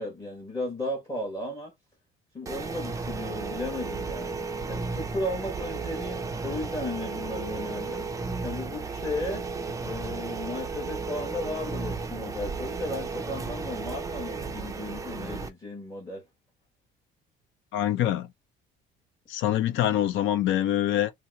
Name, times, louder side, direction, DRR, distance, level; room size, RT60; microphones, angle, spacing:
voice 1, 0.0-1.7 2.3-4.3 4.7-8.1 8.4-9.4 9.8-16.2, left 2 dB, 15° left, 1.1 m, -35 dB
sound 1, 2.5-15.5, right 4 dB, 15° right, 0.4 m, -34 dB
voice 2, 17.7-18.3 19.3-21.1, left 12 dB, 70° left, 0.6 m, -25 dB
2.8 x 2.0 x 3.3 m
cardioid pair, 125°, 21 cm